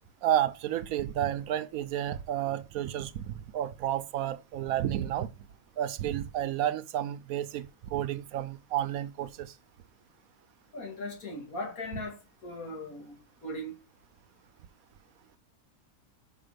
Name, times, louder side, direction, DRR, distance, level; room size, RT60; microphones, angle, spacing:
voice 1, 0.2-5.3 5.8-9.5, right 11 dB, 80° right, 1.0 m, -31 dB
voice 2, 10.7-12.2 12.4-13.2 13.4-13.8, left 1 dB, 75° left, 2.6 m, -38 dB
5.4 x 5.3 x 5.1 m
omnidirectional pair, 1.5 m